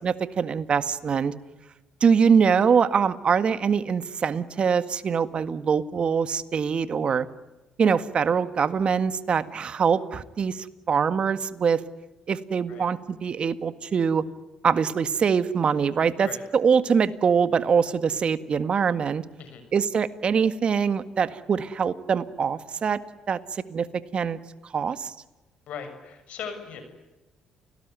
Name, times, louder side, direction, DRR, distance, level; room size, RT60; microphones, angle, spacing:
voice 1, 0.0-1.3 2.0-7.3 7.8-11.8 12.3-14.2 14.6-16.3 16.5-19.2 19.7-23.0 23.3-24.4 24.7-25.1, right 6 dB, 50° right, 13 dB, 1.8 m, -23 dB
voice 2, 25.7-26.8, left 7 dB, 65° left, 8 dB, 6.8 m, -38 dB
29.5 x 19.5 x 9.5 m, 1.1 s
hypercardioid pair, 55°, 2 cm